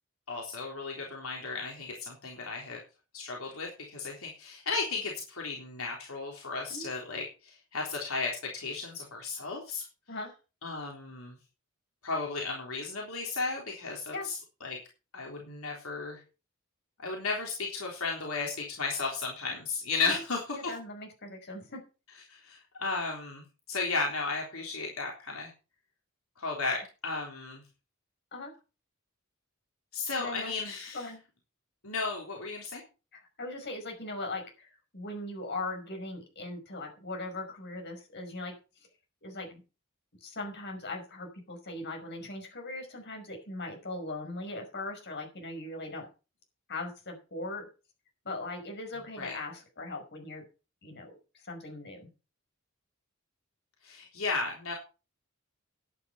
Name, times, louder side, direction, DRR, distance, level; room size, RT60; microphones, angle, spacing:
voice 1, 0.3-2.8 3.1-9.8 10.6-11.4 12.0-14.8 15.1-16.2 17.0-20.7 22.3-23.4 23.7-25.5 26.4-27.6 29.9-31.1 31.8-32.8 49.2-49.4 53.8-54.7, left 4 dB, 80° left, -1 dB, 3.6 m, -34 dB
voice 2, 20.5-21.8 28.3-28.5 30.2-30.5 30.9-31.2 33.1-38.6 39.2-39.6 40.2-46.1 46.7-47.7 48.2-50.4 50.8-52.1, left 2 dB, 55° left, 3 dB, 5.5 m, -39 dB
11.0 x 9.1 x 5.6 m, 0.32 s
head